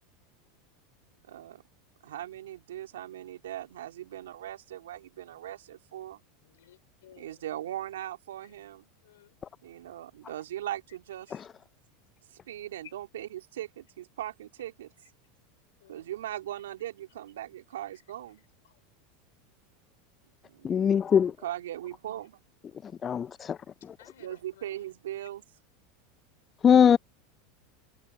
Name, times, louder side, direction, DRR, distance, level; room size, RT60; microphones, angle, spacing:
voice 1, 1.2-1.6 2.0-6.2 7.2-8.9 9.6-11.4 12.3-14.9 15.9-18.4 20.5-20.9 21.4-22.4 24.2-25.4, right 12 dB, 80° right, 2.8 m, -39 dB
voice 2, 6.4-7.4 9.0-9.4 11.3-11.4 15.8-16.1 18.6-18.8 20.6-20.9 24.0-24.9, left 13 dB, 80° left, 3.8 m, -58 dB
voice 3, 20.6-21.3 23.0-23.6 26.6-27.0, left 8 dB, 30° left, 0.3 m, -21 dB
hypercardioid pair, 95°, 0 cm